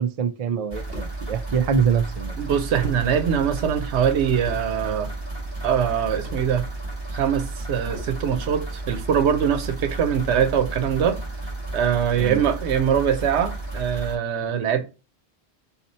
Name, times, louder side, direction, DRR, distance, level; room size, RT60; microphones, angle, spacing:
voice 1, 0.0-2.4 12.2-12.4, right 7 dB, 55° right, 0.4 m, -24 dB
sound 1, 0.7-14.2, right 2 dB, 25° right, 1.2 m, -33 dB
sound 2, 0.9-1.2 2.4-2.5 2.8-3.1 4.4-4.8 6.2-6.5 7.9-8.3, left 1 dB, 5° right, 1.5 m, -40 dB
voice 2, 2.4-5.1 5.6-6.6 7.1-11.2 11.7-14.8, right 8 dB, 85° right, 0.9 m, -23 dB
4.0 x 2.9 x 4.0 m
omnidirectional pair, 1.1 m